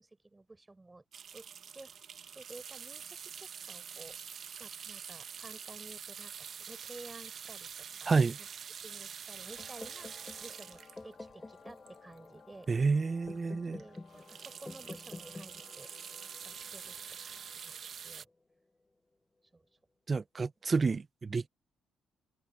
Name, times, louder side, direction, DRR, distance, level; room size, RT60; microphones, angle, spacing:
voice 1, 0.0-1.5 1.7-1.9 2.3-4.2 4.6-8.5 8.8-12.7 13.5-15.9 16.4-17.0 17.2-18.3 19.5-19.7, right 2 dB, 15° right, 6.3 m, -53 dB
sound 1, 1.1-12.4 12.9-13.0 13.2-13.4 13.7-18.2, right 7 dB, 55° right, 0.9 m, -46 dB
voice 2, 8.1-8.4 12.7-13.8 20.1-21.5, right 4 dB, 35° right, 0.8 m, -29 dB
sound 2, 9.1-18.0, left 8 dB, 60° left, 5.6 m, -61 dB
sound 3, 9.6-17.5, left 2 dB, 20° left, 5.9 m, -50 dB
cardioid pair, 90°, 0 cm